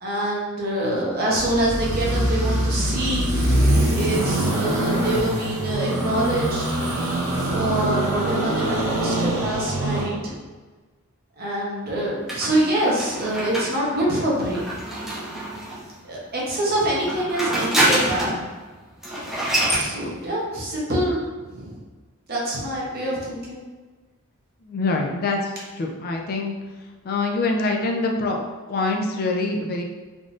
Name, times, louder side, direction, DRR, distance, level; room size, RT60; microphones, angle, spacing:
voice 1, 0.0-3.3 3.9-6.7 7.4-10.3 11.4-14.7 16.0-18.5 19.7-21.2 21.5-21.8 22.3-23.6, right 1 dB, 45° right, -4 dB, 0.8 m, -25 dB
sound 1, 1.3-10.1, right 1 dB, 85° right, 0.9 m, -23 dB
sound 2, 12.3-15.9 16.9-18.4 18.7-18.8 19.0-19.9, right 1 dB, ahead, 0.7 m, -25 dB
voice 2, 24.6-26.6 27.0-29.8, left 3 dB, 45° left, 1 dB, 0.4 m, -25 dB
3.6 x 2.5 x 2.4 m, 1.3 s
head